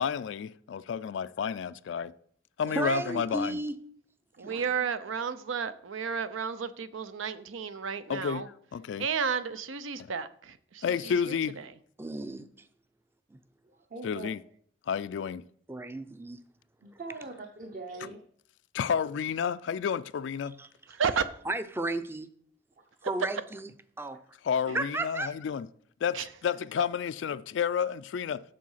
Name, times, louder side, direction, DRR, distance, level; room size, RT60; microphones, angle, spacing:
voice 1, 0.0-2.1 2.6-3.6 8.1-8.5 8.7-9.1 10.8-11.6 14.0-14.4 14.9-15.4 18.7-20.6 24.4-25.7 26.0-28.4, left 7 dB, 70° left, 0.3 m, -30 dB
voice 2, 2.7-3.8 4.4-4.6 12.0-12.7 13.3-13.4 15.7-16.4 20.6-20.7 21.2-22.3 23.0-23.7 24.0-24.2 24.7-25.3, right 2 dB, 10° right, 0.4 m, -34 dB
voice 3, 4.4-8.5 9.0-11.7 20.9-21.2 26.1-26.2, right 6 dB, 90° right, 0.6 m, -33 dB
voice 4, 13.6-14.3 16.8-18.2 22.8-23.2 24.1-24.2, right 3 dB, 45° right, 0.8 m, -43 dB
7.5 x 6.5 x 5.6 m
head